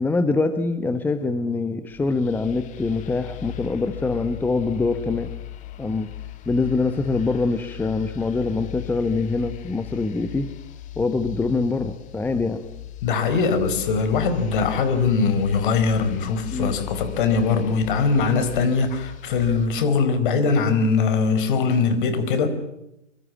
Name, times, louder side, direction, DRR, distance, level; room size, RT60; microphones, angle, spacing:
voice 1, 0.0-5.3 5.8-6.1 6.5-10.5 11.0-12.6 16.5-16.8, left 3 dB, 5° left, 1.1 m, -24 dB
sound 1, 1.9-19.7, left 15 dB, 20° left, 1.9 m, -38 dB
voice 2, 13.0-22.5, left 4 dB, 45° left, 5.0 m, -21 dB
26.0 x 25.0 x 7.3 m
figure-of-eight pair, 120°, 36 cm